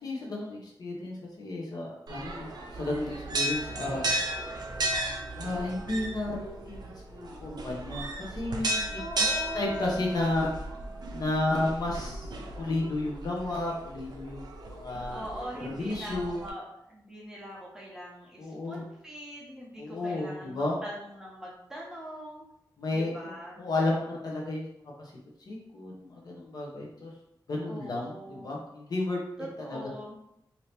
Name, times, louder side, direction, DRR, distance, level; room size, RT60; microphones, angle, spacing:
voice 1, 0.0-4.0 5.4-9.0 9.5-10.5 11.1-12.3 12.6-14.4 14.7-15.2 15.6-16.4 18.4-18.9 19.8-20.8 22.8-23.1 23.6-24.7 25.0-25.1 25.5-27.1 27.5-29.2 29.7-29.9, left 2 dB, 55° left, -3 dB, 0.8 m, -32 dB
sound 1, 2.1-16.5, right 1 dB, 60° right, 0.5 m, -35 dB
voice 2, 9.0-9.9 15.1-22.5 22.9-23.6 27.7-28.6 29.4-30.2, equal, 10° right, -5 dB, 0.8 m, -42 dB
2.8 x 2.7 x 3.3 m, 0.80 s
wide cardioid pair, 170°, 8 cm